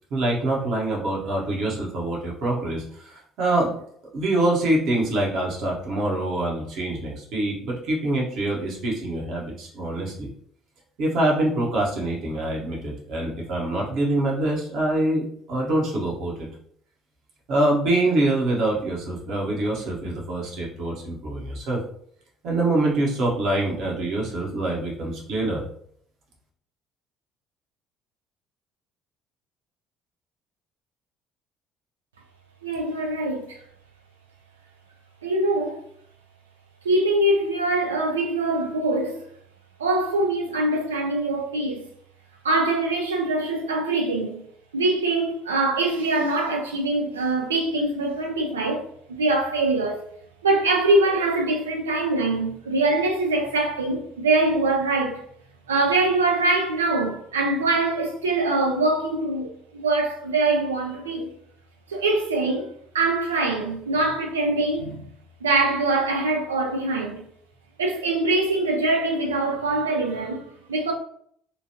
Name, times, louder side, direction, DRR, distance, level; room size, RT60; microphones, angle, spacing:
voice 1, 0.1-3.7 4.1-10.3 11.0-16.5 17.5-21.8 22.4-25.6, right 1 dB, 60° right, 1.0 m, -25 dB
voice 2, 32.6-33.6 35.2-35.8 36.8-39.3 39.8-41.8 42.4-44.4 44.7-50.0 50.4-55.2 55.7-61.3 61.9-65.1 65.4-67.2 67.8-70.9, right 2 dB, 85° right, 0.5 m, -23 dB
2.9 x 2.3 x 2.9 m
hypercardioid pair, 55°, 0 cm